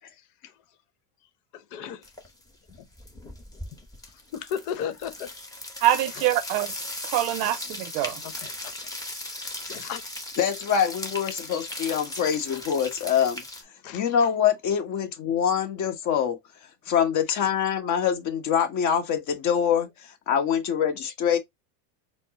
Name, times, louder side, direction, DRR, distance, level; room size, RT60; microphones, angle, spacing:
voice 1, 1.5-2.0 4.3-5.3 7.4-7.5 8.0-8.9 9.7-10.0 13.8-14.0, left 8 dB, 70° left, 1.0 m, -35 dB
sound 1, 2.0-2.4 2.7-13.6, left 1 dB, 5° left, 0.9 m, -38 dB
voice 2, 5.8-6.7 7.0-8.2, right 13 dB, 60° right, 0.6 m, -24 dB
voice 3, 10.4-13.4 13.9-16.4 16.9-21.4, left 8 dB, 35° left, 1.1 m, -24 dB
4.3 x 2.0 x 4.0 m
supercardioid pair, 130°, 48 cm